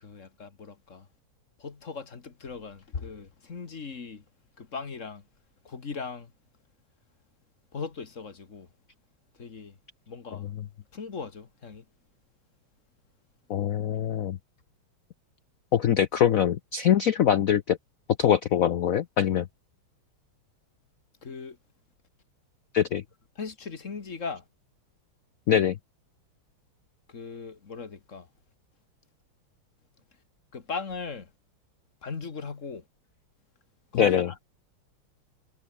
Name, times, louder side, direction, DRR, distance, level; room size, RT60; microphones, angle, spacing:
voice 1, 0.0-1.1 1.6-4.2 4.6-5.2 5.6-6.3 7.7-8.7 9.4-9.8 10.1-10.4 10.9-11.8 21.2-21.6 23.4-24.4 27.1-28.3 30.5-31.3 32.0-32.8 33.9-34.5, left 5 dB, 35° left, 1.9 m, -38 dB
voice 2, 13.5-14.4 15.7-17.8 18.2-19.5 22.7-23.0 25.5-25.8 33.9-34.3, left 9 dB, 85° left, 0.7 m, -23 dB
omnidirectional pair, 2.4 m